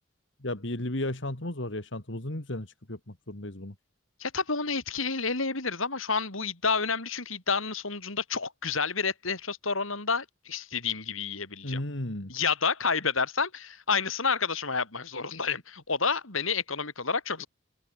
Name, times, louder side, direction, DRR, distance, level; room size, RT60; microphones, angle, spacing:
voice 1, 0.4-3.7 11.6-12.3, left 1 dB, 65° left, 2.6 m, -34 dB
voice 2, 4.2-11.8 12.3-17.5, left 5 dB, 80° left, 4.9 m, -29 dB
head